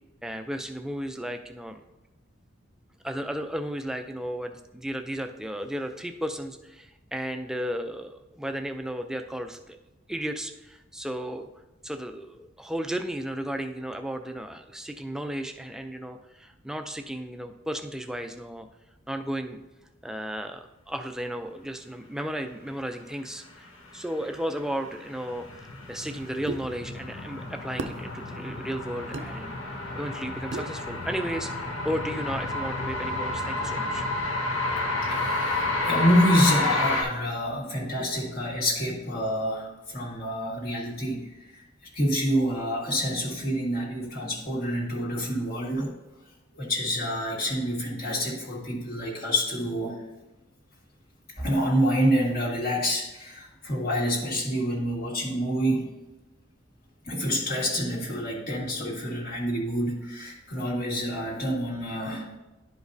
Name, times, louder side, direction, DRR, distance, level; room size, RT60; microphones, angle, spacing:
voice 1, 0.2-1.8 3.0-9.8 10.1-11.5 11.8-18.7 19.1-19.6 20.0-23.7 23.9-29.6 29.9-34.1, equal, 5° right, 6 dB, 0.4 m, -34 dB
sound 1, 24.2-37.0, left 2 dB, 80° left, 1.2 m, -30 dB
sound 2, 26.5-26.6 27.8-28.0 29.1-29.3 30.5-30.7, right 3 dB, 65° right, 0.5 m, -33 dB
voice 2, 35.0-41.6 41.9-45.9 46.5-50.0 51.4-55.9 57.1-62.3, equal, 50° left, -4 dB, 1.8 m, -27 dB
11.0 x 5.0 x 2.7 m, 1.0 s
head